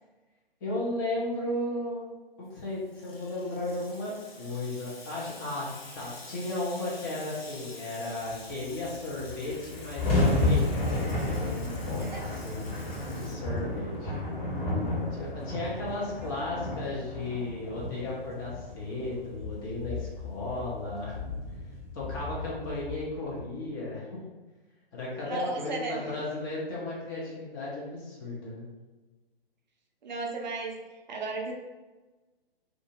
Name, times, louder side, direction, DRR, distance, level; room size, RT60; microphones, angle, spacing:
voice 1, 0.6-2.0 2.4-4.1 4.4-14.1 15.1-21.1 21.9-24.2 24.9-28.7, left 2 dB, 20° left, -5 dB, 0.5 m, -35 dB
Water tap faucet / Sink (filling or washing), 2.6-14.0, left 2 dB, 70° left, 0.8 m, -48 dB
sound 1, 8.8-8.9 9.1-23.4, left 2 dB, 40° left, 1.3 m, -32 dB
voice 2, 16.2-16.7 25.2-26.1 30.0-30.8 31.1-31.5, right 3 dB, 50° right, 0 dB, 0.5 m, -35 dB
2.4 x 2.3 x 2.8 m, 1.2 s
figure-of-eight pair, 130°, 31 cm